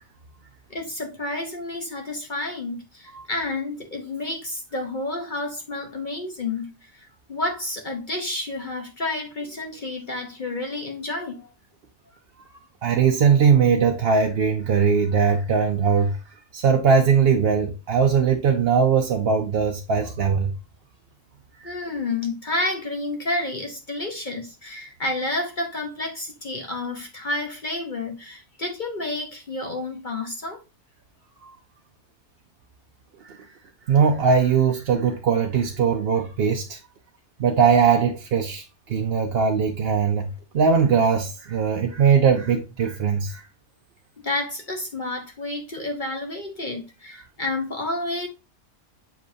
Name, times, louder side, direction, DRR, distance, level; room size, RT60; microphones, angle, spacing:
voice 1, 0.7-11.5 21.6-30.6 44.2-48.3, left 2 dB, 45° left, 1.1 m, -30 dB
voice 2, 12.8-16.2 16.5-20.5 21.6-21.7 33.2-33.4 33.9-36.8 37.4-38.6 38.9-40.3 40.5-43.4, right 6 dB, 60° right, 0.9 m, -20 dB
7.0 x 5.3 x 2.6 m
omnidirectional pair, 1.2 m